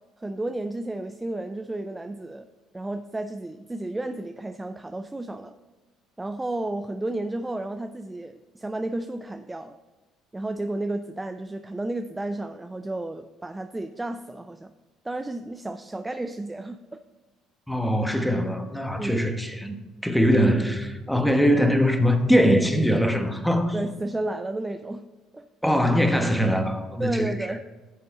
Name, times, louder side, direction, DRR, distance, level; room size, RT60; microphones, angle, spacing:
voice 1, 0.2-2.5 2.7-5.5 6.2-9.8 10.3-14.7 15.0-17.0 19.0-19.3 23.7-25.1 25.3-25.5 27.0-27.6, right 2 dB, 15° right, 0.5 m, -32 dB
voice 2, 17.7-23.8 25.6-27.6, equal, 5° left, 1.2 m, -22 dB
9.8 x 6.8 x 4.1 m
hypercardioid pair, 60°, 0 cm